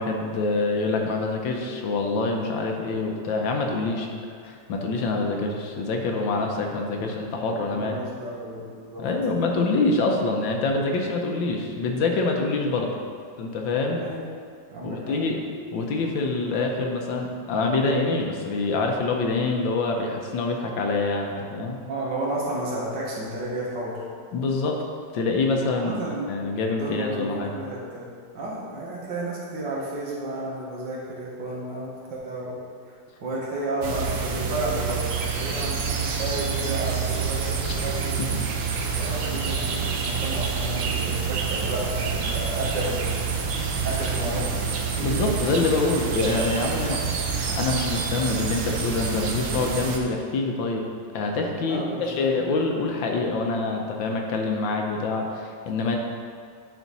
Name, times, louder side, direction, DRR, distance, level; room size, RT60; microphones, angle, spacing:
voice 1, 0.0-4.1 4.4-8.0 9.0-13.0 13.4-14.0 14.8-15.4 15.7-21.8 24.3-24.8 25.1-26.0 26.3-27.5 37.7-37.8 38.3-38.4 45.0-47.0 47.4-50.8 51.1-56.0, left 3 dB, 75° left, 1 dB, 1.6 m, -25 dB
voice 2, 7.5-9.1 14.0-14.2 14.7-15.2 21.8-24.0 25.7-26.3 26.8-28.1 28.3-32.6 32.9-35.0 35.3-38.0 38.9-43.4 43.8-44.6 51.7-52.3, right 1 dB, 65° right, -4 dB, 2.1 m, -32 dB
sound 1, 33.8-50.0, right 5 dB, 90° right, 1.6 m, -27 dB
11.0 x 4.4 x 4.1 m, 2.2 s
omnidirectional pair, 2.1 m